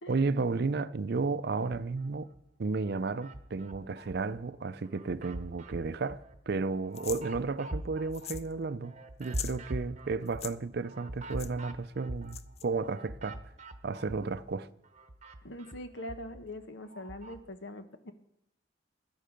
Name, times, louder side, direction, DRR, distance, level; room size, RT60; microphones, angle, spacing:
voice 1, 0.1-2.3 2.6-8.9 9.2-13.4 13.8-14.7, right 4 dB, 60° right, 0.5 m, -33 dB
sound 1, 1.6-2.4 2.8-4.4 4.8-14.5 14.8-17.4, right 1 dB, 40° right, 0.9 m, -44 dB
sound 2, 6.9-7.2 8.1-8.5 8.8-8.9 9.2-9.6 10.3-10.5 11.4-11.5 12.3-12.6, left 10 dB, 35° left, 0.4 m, -41 dB
voice 2, 15.4-18.1, left 1 dB, 75° left, 1.1 m, -43 dB
13.0 x 10.5 x 5.2 m
head